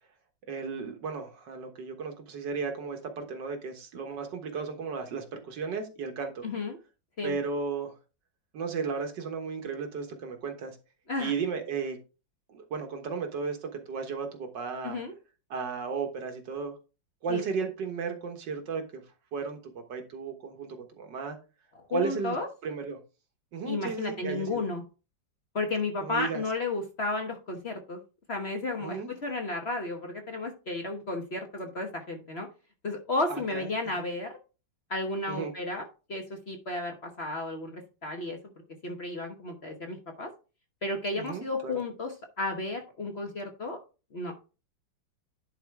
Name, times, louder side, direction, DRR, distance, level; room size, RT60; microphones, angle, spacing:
voice 1, 0.5-6.5 7.2-7.9 8.5-10.8 11.2-12.0 12.5-15.0 15.5-16.8 17.2-19.0 19.3-19.6 19.9-21.4 21.9-22.4 22.6-23.0 23.5-24.7 26.0-26.4 28.8-29.1 33.3-33.7 33.9-34.0 35.3-35.5 41.2-41.8, right 5 dB, 70° right, 5 dB, 1.9 m, -34 dB
voice 2, 6.4-6.8 7.2-7.4 11.1-11.3 14.8-15.1 17.3-17.4 21.9-22.5 23.7-24.8 25.5-28.0 28.3-32.5 32.8-34.4 34.9-38.4 38.8-40.3 40.8-43.8 44.1-44.5, left 2 dB, 40° left, 3 dB, 1.1 m, -33 dB
10.5 x 4.4 x 3.5 m, 0.32 s
omnidirectional pair, 2.1 m